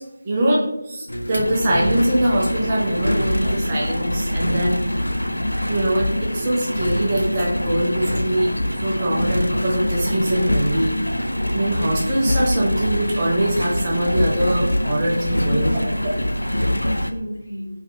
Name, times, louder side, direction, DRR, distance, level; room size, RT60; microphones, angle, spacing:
voice 1, 0.0-5.3 5.7-8.5 8.8-10.9 11.5-15.7, right 1 dB, 20° right, -4 dB, 0.5 m, -22 dB
Engine, 1.1-17.1, equal, 85° left, 0.3 m, -24 dB
voice 2, 15.4-17.7, equal, 45° left, -5 dB, 1.3 m, -32 dB
3.0 x 2.2 x 3.7 m, 0.88 s
figure-of-eight pair, 165°, 0 cm